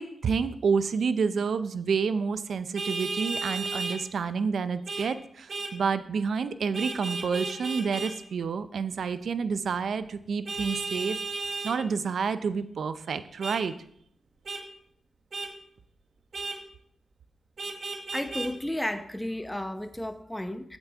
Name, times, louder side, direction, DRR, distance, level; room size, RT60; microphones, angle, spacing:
voice 1, 0.0-11.2 11.6-13.7, right 5 dB, 80° right, 12 dB, 0.5 m, -29 dB
Vehicle horn car horn honking, 2.7-4.0 4.9-5.1 5.5-5.7 6.7-8.1 10.5-11.7 13.4-13.6 14.5-14.6 15.3-15.5 16.3-16.6 17.6-18.5, right 3 dB, 60° right, 1.3 m, -34 dB
voice 2, 18.1-20.8, left 1 dB, 10° left, 8 dB, 0.9 m, -33 dB
8.9 x 8.2 x 3.5 m, 0.68 s
cardioid pair, 55°, 0 cm